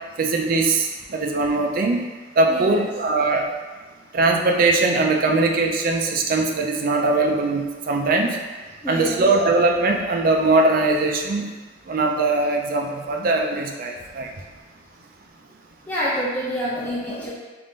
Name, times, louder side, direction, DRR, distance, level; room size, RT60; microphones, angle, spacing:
voice 1, 0.2-2.0 2.4-3.4 4.1-8.4 8.9-11.5 11.9-14.3, right 3 dB, 45° right, 2 dB, 0.4 m, -21 dB
voice 2, 2.5-2.9 8.8-9.2 15.9-17.3, equal, 10° left, -9 dB, 0.6 m, -27 dB
3.6 x 2.5 x 3.8 m, 1.3 s
head